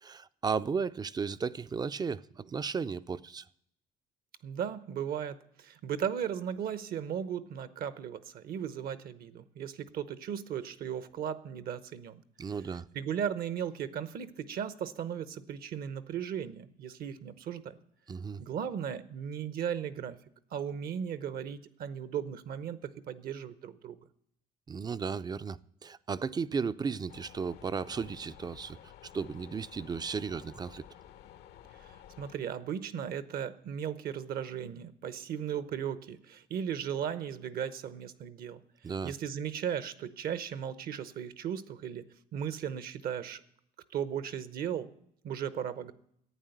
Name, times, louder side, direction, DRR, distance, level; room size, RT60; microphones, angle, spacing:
voice 1, 0.0-3.4 12.4-12.9 18.1-18.4 24.7-30.9 38.8-39.1, right 5 dB, 25° right, 0.4 m, -35 dB
voice 2, 4.4-12.2 12.9-17.8 18.4-20.2 20.5-24.0 31.8-42.0 42.3-43.4 43.9-44.9 45.2-45.9, right 8 dB, 60° right, 0.9 m, -36 dB
sound 1, 27.1-32.4, left 11 dB, 80° left, 0.9 m, -53 dB
11.0 x 8.8 x 7.9 m
cardioid pair, 110°, 17 cm